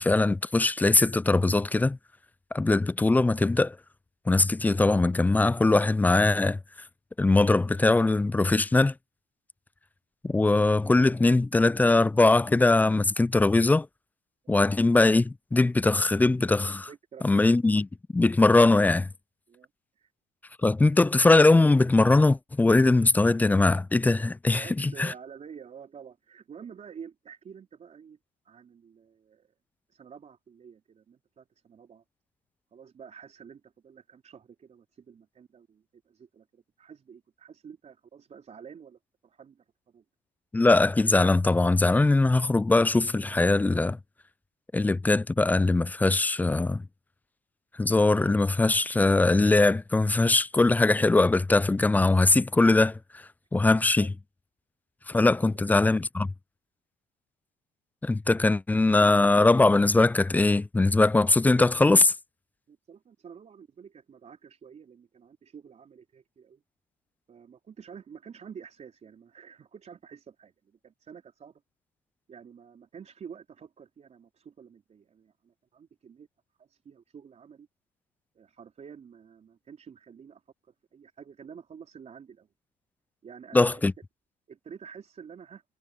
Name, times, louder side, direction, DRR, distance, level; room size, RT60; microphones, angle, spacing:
voice 1, 0.0-2.0 2.5-3.8 4.3-6.6 7.2-8.9 10.2-13.9 14.5-16.9 17.2-19.1 20.6-25.1 40.5-44.0 44.7-46.8 47.8-53.0 53.5-54.1 55.1-56.3 58.0-62.1 83.5-83.9, left 2 dB, 10° left, 0.3 m, -21 dB
voice 2, 16.9-17.3 19.5-19.7 20.0-20.1 24.5-28.2 28.4-29.5 29.9-32.0 32.7-40.0 54.0-54.1 55.3-55.8 62.7-66.6 67.3-71.6 72.3-76.3 76.6-77.7 78.3-80.4 80.9-82.5 83.2-83.8 84.5-85.6, right 7 dB, 40° right, 4.5 m, -49 dB
cardioid pair, 110°, 17 cm